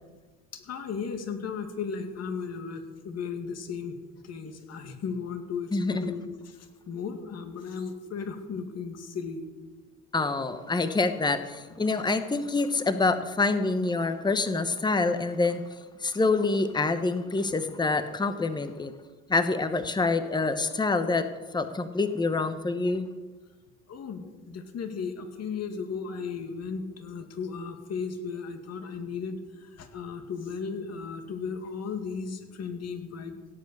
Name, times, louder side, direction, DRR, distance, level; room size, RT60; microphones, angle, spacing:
voice 1, 0.5-9.4 23.9-33.4, left 5 dB, 50° left, 6 dB, 2.1 m, -35 dB
voice 2, 5.7-6.0 10.1-15.6 16.0-18.9 19.3-23.1, left 3 dB, 15° left, 10 dB, 1.0 m, -26 dB
16.5 x 8.3 x 6.7 m, 1.3 s
supercardioid pair, 90°, 32 cm